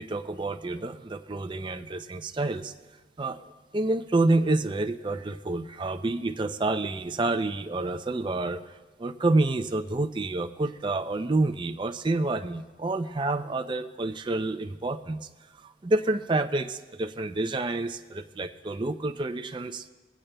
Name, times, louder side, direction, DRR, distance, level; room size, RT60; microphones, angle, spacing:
voice 1, 0.0-2.7 3.2-3.4 3.7-15.3 15.6-19.9, right 2 dB, 25° right, 8 dB, 0.4 m, -28 dB
20.5 x 15.5 x 2.2 m, 1.3 s
head